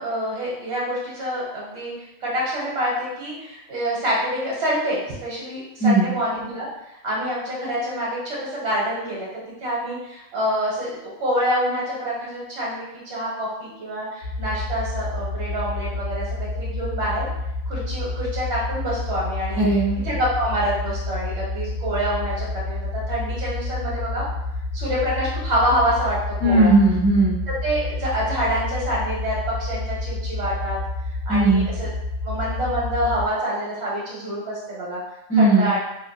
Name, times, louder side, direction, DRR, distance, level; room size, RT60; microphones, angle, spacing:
voice 1, 0.0-1.9 2.2-6.7 7.0-17.2 17.7-19.6 20.0-24.2 24.7-26.7 27.6-30.8 31.3-31.9 32.2-35.0 35.3-35.8, equal, 60° right, -6 dB, 1.0 m, -26 dB
sound 1, 14.2-33.3, left 2 dB, 75° left, 0.9 m, -29 dB
voice 2, 19.6-20.0 26.4-27.4 31.3-31.7 35.3-35.7, right 2 dB, 15° right, -8 dB, 1.1 m, -17 dB
2.8 x 2.8 x 2.3 m, 0.87 s
omnidirectional pair, 1.3 m